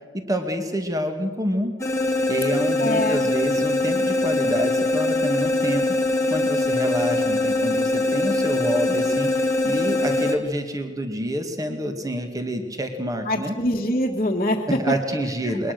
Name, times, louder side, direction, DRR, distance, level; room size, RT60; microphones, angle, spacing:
voice 1, 0.1-1.7 2.3-5.8 6.3-13.6 14.7-15.7, equal, 20° right, 6 dB, 2.0 m, -28 dB
sound 1, 1.8-10.4, left 2 dB, 15° left, 1.9 m, -22 dB
voice 2, 2.8-3.3 13.3-14.9 15.5-15.7, left 1 dB, 35° left, -5 dB, 1.7 m, -24 dB
22.0 x 20.0 x 6.7 m, 1.4 s
head